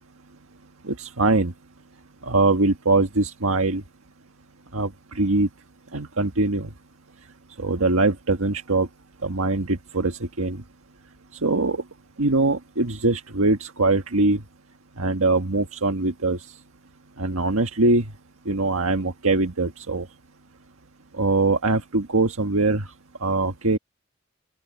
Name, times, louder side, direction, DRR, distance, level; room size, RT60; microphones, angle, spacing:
voice 1, 0.8-1.5 2.2-3.8 4.7-4.9 5.1-5.5 5.9-6.7 7.6-8.9 9.2-10.6 11.4-11.8 12.2-14.4 15.0-16.5 17.2-18.0 18.4-20.0 21.2-22.8 23.2-23.8, right 2 dB, 90° right, 1.5 m, -22 dB
open air
head